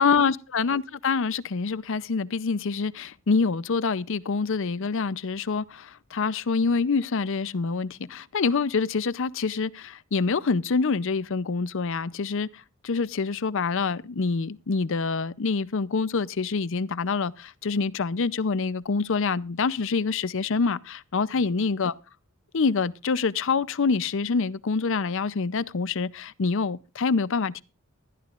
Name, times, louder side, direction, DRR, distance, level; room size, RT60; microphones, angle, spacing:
voice 1, 0.0-12.5 12.8-21.9 22.5-27.6, left 4 dB, 65° left, 0.6 m, -26 dB
19.5 x 13.5 x 2.5 m
head